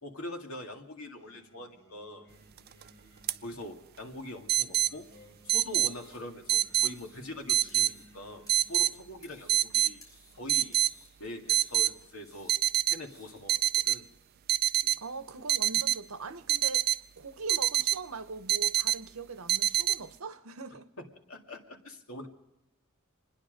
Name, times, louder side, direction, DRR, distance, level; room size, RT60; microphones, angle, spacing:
voice 1, 0.0-2.3 3.4-5.1 5.5-10.0 10.4-10.8 11.2-12.5 12.9-14.1 14.8-15.0 21.3-22.3, left 1 dB, 80° left, 2.2 m, -43 dB
Singing, 1.2-9.6, equal, 55° left, 5.2 m, -60 dB
sound 1, 2.6-2.8 3.3-3.4 4.5-4.9 5.5-5.9 6.5-6.9 7.5-7.9 8.5-8.9 9.5-9.9 10.5-10.9 11.5-11.9 12.5-13.0 13.5-14.0 14.5-15.0 15.5-16.0 16.5-17.0 17.5-18.0 18.5-19.0 19.5-20.0, right 14 dB, 45° right, 0.4 m, -26 dB
sound 2, 5.5-13.9, left 1 dB, 15° left, 6.6 m, -59 dB
voice 2, 15.0-16.9 17.2-20.9, right 4 dB, 75° right, 1.0 m, -41 dB
26.5 x 10.5 x 5.2 m
head